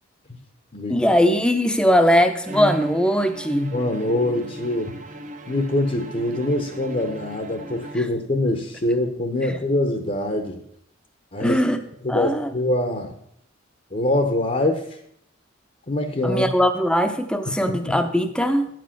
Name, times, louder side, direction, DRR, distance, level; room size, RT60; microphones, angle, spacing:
voice 1, 0.9-3.7 9.5-9.6 11.4-11.8 12.1-12.5 16.2-18.7, equal, 5° left, 7 dB, 0.7 m, -20 dB
Bowed string instrument, 2.4-8.4, right 1 dB, 35° right, 0.8 m, -36 dB
voice 2, 3.7-5.0 5.5-10.6 11.3-11.6 12.0-13.1 13.9-15.0 15.9-16.5 17.7-18.0, left 1 dB, 35° left, 5 dB, 0.9 m, -24 dB
11.0 x 7.6 x 5.8 m, 0.70 s
head